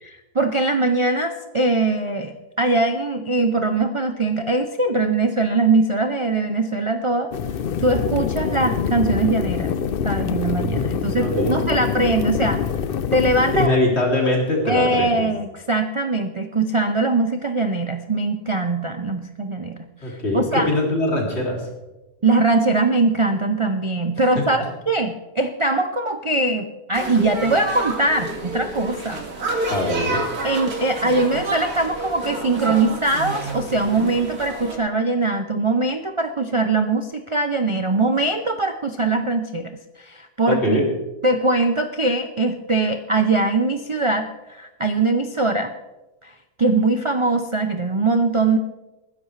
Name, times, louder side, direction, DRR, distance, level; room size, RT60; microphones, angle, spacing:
voice 1, 0.0-7.3 7.8-9.7 10.0-12.6 13.1-13.7 14.7-19.8 20.1-20.7 22.2-29.2 30.4-40.8 41.2-45.7 46.2-46.3 46.6-48.6, right 2 dB, 50° right, 6 dB, 0.3 m, -21 dB
sound 1, 7.3-13.7, left 7 dB, 75° left, 0.5 m, -25 dB
voice 2, 10.6-11.6 13.5-15.3 20.0-21.7 24.2-24.4 29.7-30.2 40.5-40.8, left 1 dB, 45° left, -1 dB, 3.2 m, -22 dB
sound 2, 26.9-34.8, right 2 dB, 70° right, 2.5 m, -29 dB
20.5 x 10.5 x 3.3 m, 1.0 s
omnidirectional pair, 1.6 m